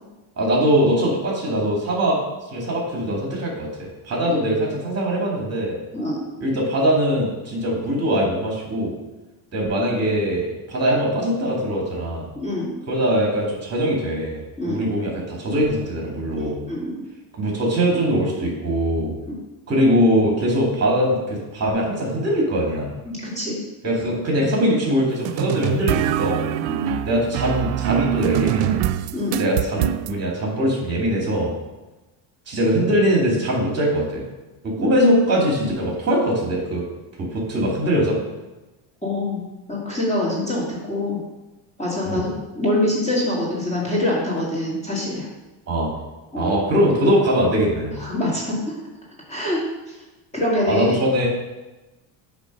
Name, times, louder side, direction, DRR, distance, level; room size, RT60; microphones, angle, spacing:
voice 1, 0.4-2.2 2.5-5.8 6.4-8.9 9.5-12.3 12.9-16.6 17.4-19.1 19.7-22.9 23.8-26.4 27.1-28.8 29.4-31.5 32.5-34.2 34.6-36.8 37.2-38.2 42.0-42.3 45.7-45.9 46.4-48.0 50.6-51.3, equal, 30° right, -2 dB, 2.2 m, -21 dB
voice 2, 12.4-12.7 14.6-14.8 16.3-17.0 19.3-19.4 23.1-23.6 26.7-27.0 29.1-29.4 39.0-41.2 41.8-42.3 42.5-45.3 46.3-46.5 48.0-48.6 49.3-49.6 50.3-50.9, left 1 dB, 15° left, -6 dB, 1.9 m, -25 dB
sound 1, 25.3-30.1, right 13 dB, 85° right, 0.5 m, -23 dB
8.1 x 3.5 x 5.3 m, 1.1 s
cardioid pair, 125°, 48 cm